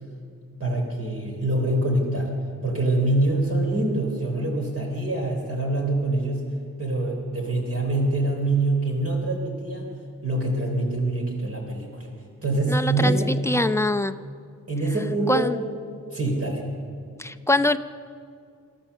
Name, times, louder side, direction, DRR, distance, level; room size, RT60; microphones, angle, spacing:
voice 1, 0.6-2.3 2.6-6.4 6.8-9.9 10.2-12.1 12.4-13.3 14.7-15.5 16.1-16.6, right 2 dB, 45° right, 0 dB, 3.4 m, -25 dB
voice 2, 12.7-14.1 15.3-15.6 17.2-17.8, left 2 dB, 10° left, 8 dB, 0.6 m, -23 dB
28.5 x 13.5 x 6.9 m, 2.3 s
wide cardioid pair, 140°, 32 cm